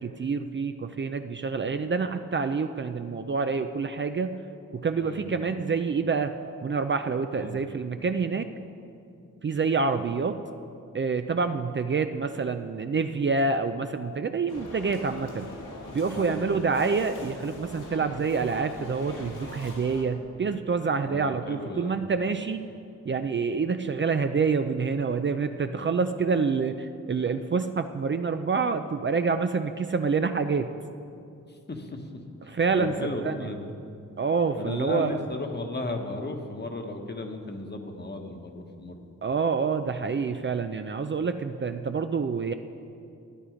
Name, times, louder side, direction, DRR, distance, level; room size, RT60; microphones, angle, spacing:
voice 1, 0.0-4.3 4.7-6.3 6.6-8.5 9.4-10.4 10.9-15.5 15.9-22.6 23.0-30.7 32.5-32.9 33.2-33.5 34.2-35.2 39.2-42.5, right 5 dB, 35° right, 8 dB, 0.5 m, -27 dB
voice 2, 5.0-5.3 7.3-7.6 16.1-16.5 21.0-21.9 31.5-32.1 32.4-33.7 34.6-39.1, left 2 dB, 35° left, 4 dB, 1.3 m, -35 dB
sound 1, 14.5-20.0, left 2 dB, 70° left, 2.0 m, -42 dB
12.5 x 9.9 x 5.1 m, 2.5 s
cardioid pair, 70°, 31 cm